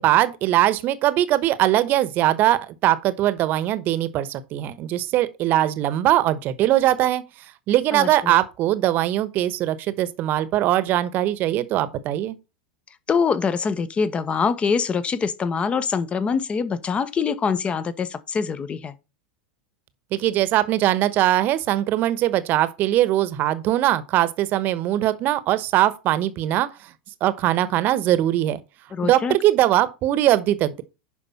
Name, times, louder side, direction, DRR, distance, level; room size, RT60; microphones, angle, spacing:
voice 1, 0.0-7.2 7.7-12.4 20.1-26.9 27.2-28.6 29.0-30.8, right 14 dB, 45° right, 1.1 m, -21 dB
voice 2, 7.9-8.4 13.1-19.0 28.9-29.3, left 5 dB, 25° left, 1.0 m, -24 dB
10.5 x 5.2 x 4.2 m
hypercardioid pair, 90°, 5 cm